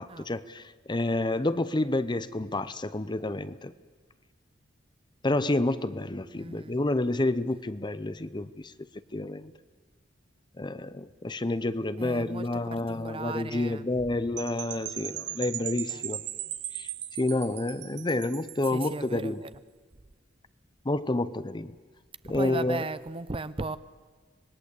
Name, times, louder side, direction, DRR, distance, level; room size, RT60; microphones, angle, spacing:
voice 1, 0.0-3.7 5.2-8.7 9.1-9.5 10.6-16.2 16.7-16.9 17.2-19.4 20.8-21.7 22.2-22.9, left 2 dB, 25° left, 0.7 m, -29 dB
voice 2, 6.4-6.8 12.0-13.8 15.1-15.2 15.9-16.0 18.7-19.5 22.2-23.8, right 3 dB, 30° right, 0.6 m, -37 dB
Percussion / Wind chime, 14.4-19.1, right 13 dB, 60° right, 1.0 m, -38 dB
26.0 x 20.5 x 8.3 m
head